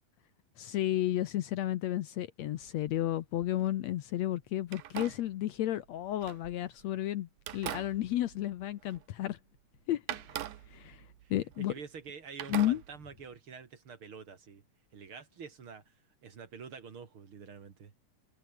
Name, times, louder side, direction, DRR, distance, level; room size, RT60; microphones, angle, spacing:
voice 1, 0.6-9.4 9.9-10.2 10.7-11.0 11.3-11.7 12.5-12.8, left 13 dB, 70° left, 1.9 m, -32 dB
sound 1, 2.6-3.8 4.6-6.9 7.4-9.3 9.6-9.7 10.1-12.1 12.4-13.4, right 13 dB, 80° right, 2.7 m, -44 dB
voice 2, 11.2-14.6 14.9-15.9 16.2-17.9, right 6 dB, 45° right, 2.6 m, -47 dB
omnidirectional pair, 3.6 m